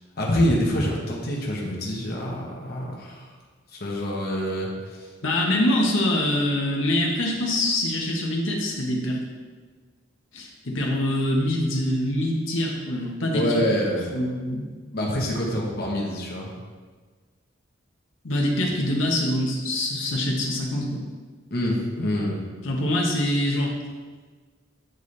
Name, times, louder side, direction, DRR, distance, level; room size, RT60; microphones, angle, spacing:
voice 1, 0.2-3.3 3.7-5.1 13.3-14.1 14.9-16.5 21.5-22.4, equal, 55° left, -2 dB, 1.1 m, -26 dB
voice 2, 5.2-9.2 10.3-13.5 14.1-14.7 18.2-21.0 22.6-23.7, left 1 dB, 90° left, -2 dB, 1.1 m, -24 dB
9.1 x 4.1 x 3.3 m, 1.4 s
head